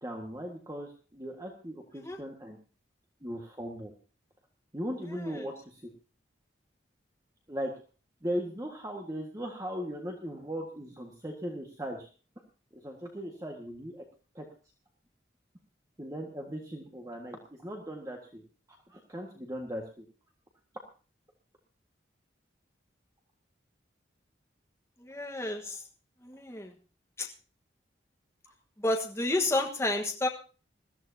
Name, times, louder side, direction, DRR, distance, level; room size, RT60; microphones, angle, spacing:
voice 1, 0.0-2.6 3.2-3.9 4.7-5.9 7.5-7.7 8.2-12.1 12.8-14.0 14.3-14.5 16.0-18.4 18.9-20.1, equal, 20° right, 1 dB, 1.7 m, -38 dB
voice 2, 5.1-5.5 25.0-25.8 26.2-26.7 27.2-27.3 28.8-30.3, left 2 dB, 15° left, 1 dB, 1.4 m, -31 dB
21.0 x 14.0 x 2.8 m, 0.36 s
head